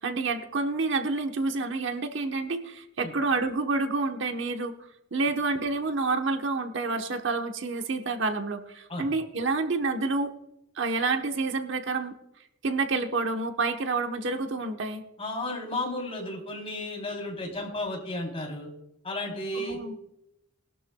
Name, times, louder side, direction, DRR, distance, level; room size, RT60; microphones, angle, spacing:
voice 1, 0.0-4.7 5.1-10.3 10.8-12.1 12.6-15.0 19.5-19.9, right 3 dB, 65° right, 6 dB, 1.1 m, -28 dB
voice 2, 15.2-18.7 19.0-19.8, left 1 dB, 30° left, 0 dB, 3.5 m, -33 dB
20.5 x 12.0 x 2.3 m, 0.86 s
head